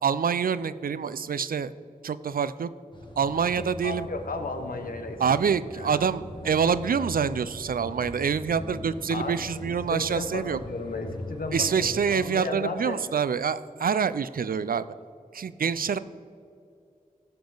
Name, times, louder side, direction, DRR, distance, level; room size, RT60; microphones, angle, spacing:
voice 1, 0.0-1.7 2.0-2.7 3.2-4.1 5.2-10.6 11.5-14.9 15.3-16.0, right 6 dB, 75° right, 15 dB, 0.4 m, -26 dB
sound 1, 2.9-12.0, left 2 dB, 30° left, 1.7 m, -41 dB
voice 2, 3.8-5.2 5.7-6.0 9.1-9.4 9.9-13.0, left 3 dB, 75° left, 5 dB, 1.2 m, -34 dB
15.5 x 6.9 x 3.9 m, 2.5 s
cardioid pair, 50°, 15 cm